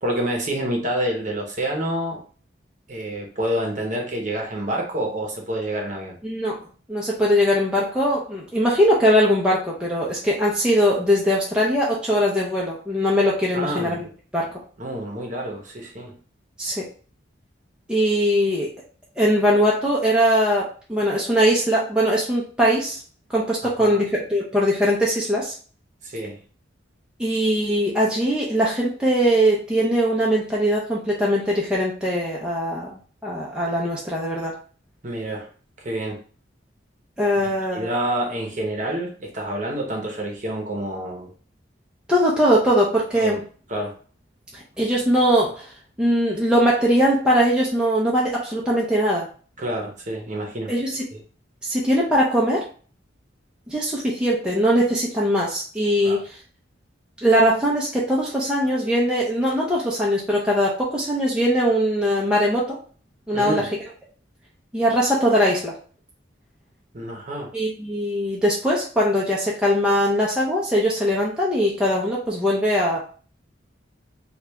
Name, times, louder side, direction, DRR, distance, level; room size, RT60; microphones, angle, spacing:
voice 1, 0.0-2.2 2.9-6.2 13.5-14.0 14.8-16.1 23.6-24.0 26.0-26.4 35.0-35.5 35.8-36.2 37.4-41.3 43.2-43.4 43.7-43.9 49.6-50.7 51.1-51.2 56.0-56.2 63.3-63.7 66.9-67.5, right 1 dB, 40° right, 0 dB, 0.9 m, -28 dB
voice 2, 6.2-6.6 6.9-14.1 14.3-14.5 16.6-16.8 17.9-18.7 19.2-23.0 23.3-25.5 27.2-34.5 37.2-37.9 42.1-43.4 44.5-45.7 46.0-49.3 50.7-51.0 51.6-52.6 53.7-56.3 57.2-62.8 63.3-63.7 64.7-65.7 67.5-73.0, equal, 5° right, -5 dB, 0.6 m, -21 dB
3.2 x 2.4 x 3.4 m, 0.40 s
head